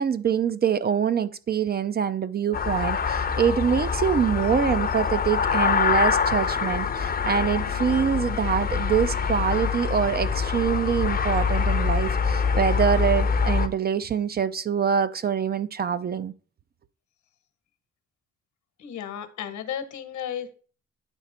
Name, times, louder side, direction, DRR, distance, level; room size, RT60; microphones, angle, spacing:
voice 1, 0.0-16.3, right 7 dB, 35° right, 0.4 m, -25 dB
sound 1, 2.5-13.7, left 6 dB, 30° left, 0.6 m, -25 dB
voice 2, 18.8-20.5, left 9 dB, 75° left, 1.1 m, -34 dB
9.8 x 4.0 x 4.3 m
cardioid pair, 90°, 30 cm